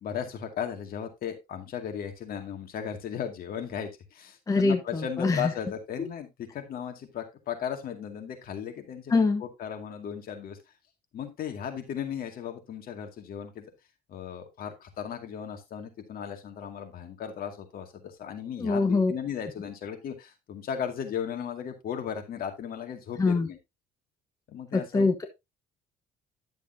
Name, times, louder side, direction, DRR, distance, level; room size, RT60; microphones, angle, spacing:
voice 1, 0.0-10.6 11.1-13.7 14.1-23.6 24.5-25.1, left 8 dB, 60° left, 5 dB, 2.2 m, -36 dB
voice 2, 4.5-5.5 9.1-9.4 18.6-19.1 23.2-23.5 24.7-25.3, left 3 dB, 20° left, 5 dB, 1.1 m, -24 dB
11.0 x 7.0 x 2.7 m, 0.22 s
cardioid pair, 110°, 17 cm